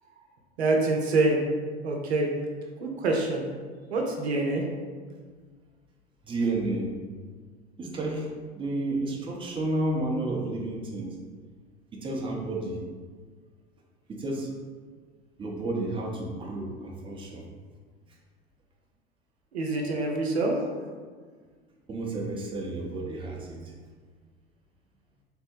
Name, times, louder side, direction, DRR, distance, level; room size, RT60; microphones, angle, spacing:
voice 1, 0.6-1.4 1.8-2.3 2.8-3.4 3.9-4.6 19.5-20.6, right 2 dB, 80° right, 0 dB, 0.7 m, -25 dB
voice 2, 6.2-7.0 7.8-11.2 11.9-12.8 14.1-14.5 15.4-17.5 21.9-23.7, right 2 dB, 15° right, -2 dB, 0.7 m, -31 dB
3.6 x 2.1 x 4.4 m, 1.5 s
hypercardioid pair, 85°, 32 cm